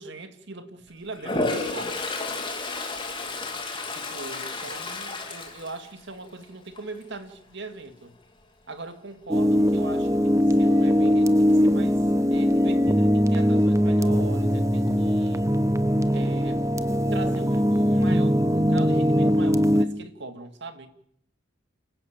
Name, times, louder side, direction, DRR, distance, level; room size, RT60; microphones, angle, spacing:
voice 1, 0.0-2.0 4.0-8.1 8.7-12.0 12.3-15.4 16.1-16.6 17.1-20.9, right 2 dB, 60° right, 8 dB, 2.2 m, -40 dB
Toilet flush, 1.2-6.4 6.8-7.1 11.6-11.7 12.0-12.7, left 3 dB, 25° left, 3.2 m, -32 dB
sound 1, 9.3-19.8, equal, 15° right, 0.9 m, -21 dB
29.0 x 12.5 x 8.8 m, 0.73 s
head